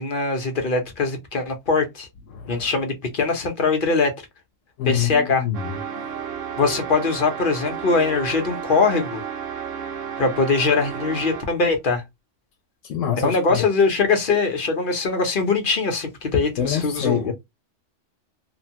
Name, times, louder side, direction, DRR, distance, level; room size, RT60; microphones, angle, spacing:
voice 1, 0.0-2.1 2.5-4.1 4.8-5.5 6.6-9.2 10.2-12.0 13.1-17.3, left 4 dB, 50° left, 0.8 m, -22 dB
voice 2, 2.3-2.7 4.8-5.6 5.9-6.3 12.8-13.6 16.6-17.3, left 10 dB, 85° left, 0.9 m, -26 dB
sound 1, 5.5-11.6, right 8 dB, 90° right, 1.1 m, -32 dB
2.9 x 2.2 x 2.7 m
omnidirectional pair, 1.3 m